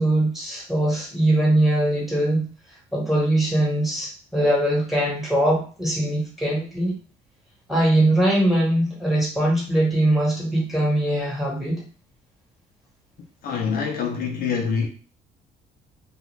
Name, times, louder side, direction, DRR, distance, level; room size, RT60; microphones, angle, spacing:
voice 1, 0.0-2.4 2.9-7.0 7.7-11.8, right 1 dB, ahead, 1.2 m, -21 dB
voice 2, 13.4-14.9, left 6 dB, 65° left, 0.6 m, -25 dB
2.5 x 2.3 x 3.1 m
cardioid pair, 110°, 17 cm